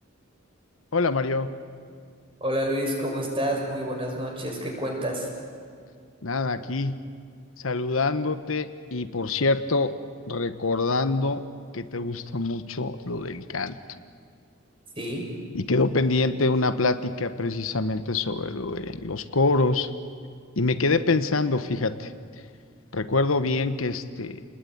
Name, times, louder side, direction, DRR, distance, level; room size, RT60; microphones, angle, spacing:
voice 1, 0.9-1.5 6.2-7.0 7.6-9.9 10.3-11.4 11.7-13.8 15.5-19.9 20.6-22.1 22.9-24.4, left 3 dB, 85° left, 11 dB, 1.2 m, -25 dB
voice 2, 2.4-5.3 15.0-15.2, equal, 25° right, 1 dB, 5.7 m, -28 dB
28.5 x 20.5 x 9.5 m, 2.1 s
head